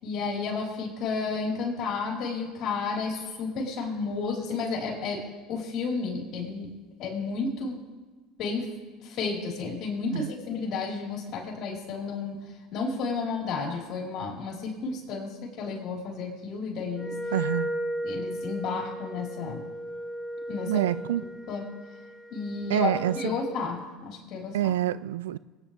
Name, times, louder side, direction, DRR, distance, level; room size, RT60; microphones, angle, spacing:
voice 1, 0.0-6.7 7.0-7.8 8.4-8.7 9.0-12.4 12.7-17.2 18.0-19.6 20.5-20.9 21.2-21.7 22.3-24.7, left 4 dB, 55° left, -2 dB, 4.7 m, -32 dB
Wind instrument woodwind instrument, 16.9-23.6, equal, 15° left, 2.3 m, -35 dB
voice 2, 17.3-17.7 20.7-21.2 22.7-23.2 24.5-25.4, right 12 dB, 85° right, 18 dB, 0.4 m, -26 dB
23.5 x 9.8 x 3.6 m, 1.3 s
hypercardioid pair, 80°, 0 cm